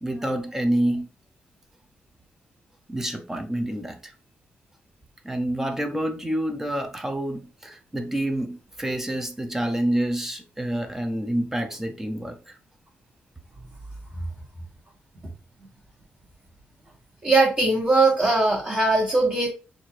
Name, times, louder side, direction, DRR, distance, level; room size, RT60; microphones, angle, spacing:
voice 1, 0.0-1.1 2.9-4.1 5.2-12.4, right 1 dB, 10° right, 0.5 m, -27 dB
voice 2, 17.2-19.5, right 2 dB, 35° right, 1.4 m, -20 dB
6.2 x 2.5 x 2.9 m
wide cardioid pair, 170°, 4 cm